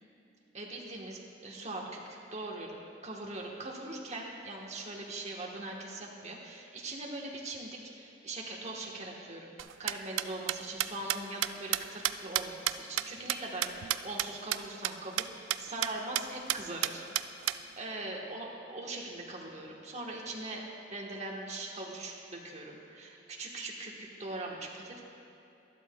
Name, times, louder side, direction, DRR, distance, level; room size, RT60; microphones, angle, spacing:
voice 1, 0.5-9.5 9.8-17.1 17.3-25.0, right 2 dB, 40° right, -1 dB, 1.2 m, -41 dB
sound 1, 9.6-14.3 14.5-14.6 14.8-14.9 15.2-15.3 15.5-15.9 16.2-16.3 16.5-17.6, right 13 dB, 90° right, 0.3 m, -30 dB
12.5 x 12.0 x 2.3 m, 2.8 s
head